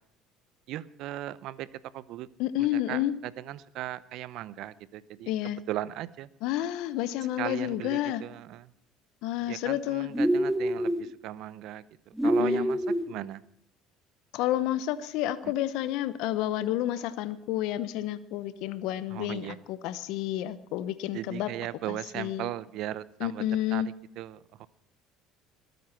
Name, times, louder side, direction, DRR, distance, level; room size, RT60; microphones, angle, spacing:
voice 1, 0.7-1.7 1.9-2.3 2.6-5.3 5.7-6.3 7.4-8.7 9.4-13.4 15.4-15.5 19.1-19.6 21.1-24.7, right 14 dB, 65° right, 18 dB, 0.7 m, -38 dB
voice 2, 2.4-3.1 5.3-5.6 6.4-8.2 9.2-10.1 12.4-12.7 14.3-21.5 22.1-22.5 23.2-23.9, left 13 dB, 75° left, 15 dB, 1.0 m, -30 dB
sound 1, 10.1-11.1 12.2-13.1, equal, 5° right, 1.1 m, -26 dB
21.5 x 9.4 x 5.9 m, 0.70 s
supercardioid pair, 80°, 0 cm